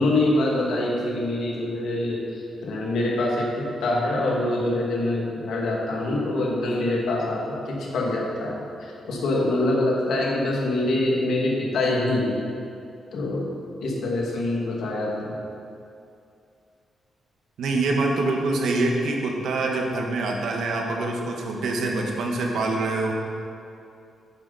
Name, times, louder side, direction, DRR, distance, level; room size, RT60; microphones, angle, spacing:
voice 1, 0.0-12.4 13.1-13.5 13.8-15.3, left 2 dB, 70° left, -3 dB, 2.3 m, -25 dB
voice 2, 17.6-23.1, right 2 dB, 70° right, 1 dB, 1.5 m, -25 dB
11.0 x 9.6 x 4.2 m, 2.5 s
wide cardioid pair, 170°, 0 cm